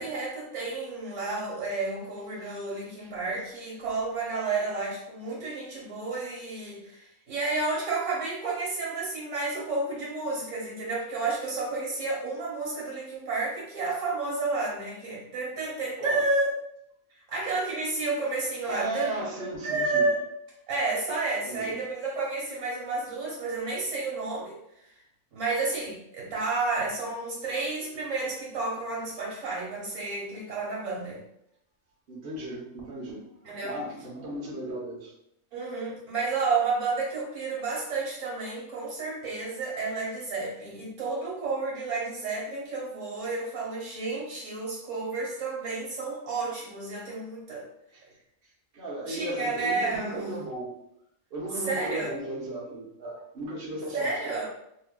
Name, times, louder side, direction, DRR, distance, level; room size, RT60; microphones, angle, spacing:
voice 1, 0.0-16.5 17.3-19.1 19.4-20.2 20.7-24.6 25.3-31.2 33.4-33.8 35.5-47.7 49.1-50.3 51.7-52.1 53.9-54.5, right 3 dB, 70° right, -3 dB, 1.5 m, -31 dB
voice 2, 18.7-20.1 21.4-21.8 32.1-33.2 33.6-35.1 47.9-48.0 48.4-50.7 51.3-54.4, right 1 dB, 50° right, -5 dB, 1.0 m, -36 dB
5.2 x 2.3 x 2.2 m, 0.78 s
omnidirectional pair, 1.3 m